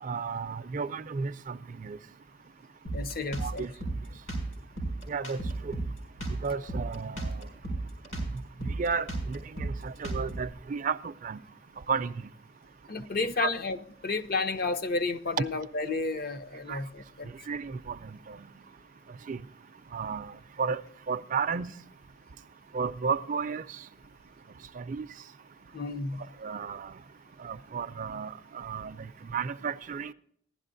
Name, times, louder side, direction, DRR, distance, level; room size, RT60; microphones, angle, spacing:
voice 1, 0.0-2.0 3.4-3.7 5.1-5.8 6.4-7.5 8.6-11.4 11.9-12.1 13.4-13.5 16.7-16.8 17.5-18.5 19.3-19.4 19.9-20.8 21.1-21.7 22.7-23.6 24.8-25.1 26.4-26.9 27.4-30.1, right 5 dB, 40° right, 0.4 m, -33 dB
Drum kit, 2.8-10.5, right 2 dB, 90° left, 4.7 m, -34 dB
voice 2, 2.9-3.7 12.9-13.8 14.0-17.3 25.7-26.2, left 3 dB, 50° left, 0.6 m, -31 dB
15.5 x 11.5 x 2.6 m
head